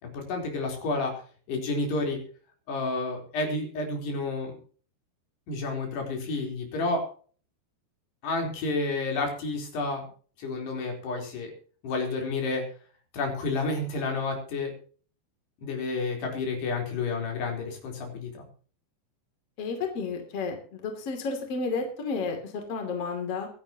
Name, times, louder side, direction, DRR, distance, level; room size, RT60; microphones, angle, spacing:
voice 1, 0.0-1.1 1.5-2.2 2.7-4.5 5.5-7.0 8.2-10.0 10.4-11.5 11.8-12.7 13.1-14.7 15.6-18.5, left 3 dB, 75° left, 2 dB, 5.9 m, -30 dB
voice 2, 19.6-23.5, left 4 dB, 40° left, 4 dB, 3.4 m, -32 dB
23.0 x 11.5 x 2.9 m, 0.43 s
omnidirectional pair, 4.9 m